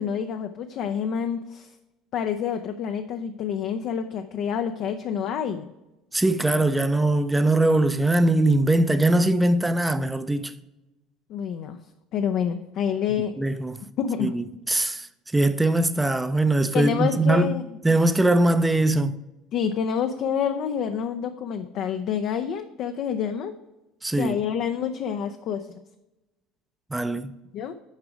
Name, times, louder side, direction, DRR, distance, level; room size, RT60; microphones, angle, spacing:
voice 1, 0.0-1.7 2.1-5.7 11.3-11.8 12.1-13.4 14.0-14.3 16.7-17.6 19.5-23.5 24.2-25.8 27.5-27.7, left 8 dB, 55° left, 0.4 m, -28 dB
voice 2, 6.1-10.5 13.4-13.8 14.2-15.1 15.3-17.6 17.8-19.2 24.0-24.4 26.9-27.3, right 2 dB, 10° right, 0.5 m, -21 dB
7.3 x 4.8 x 4.8 m
hypercardioid pair, 65°, 0 cm